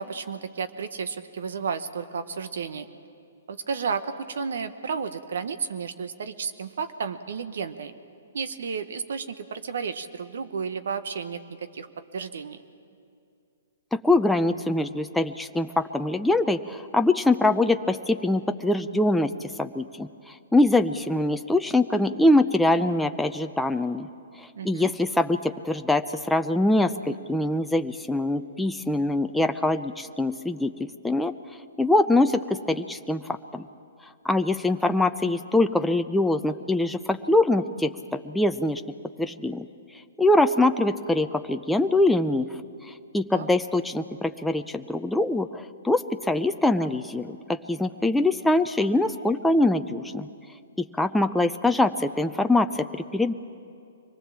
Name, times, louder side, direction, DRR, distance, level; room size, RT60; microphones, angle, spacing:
voice 1, 0.0-2.9 3.5-7.9 8.3-11.9 12.1-12.6 24.5-24.9 43.3-43.5, right 5 dB, 70° right, 10 dB, 1.0 m, -32 dB
voice 2, 13.9-24.1 24.4-31.3 31.8-33.7 34.2-38.8 39.2-39.7 40.2-42.5 42.9-50.3 50.8-53.3, left 2 dB, 5° left, 7 dB, 0.5 m, -23 dB
24.5 x 19.0 x 7.4 m, 2.5 s
hypercardioid pair, 130°, 0 cm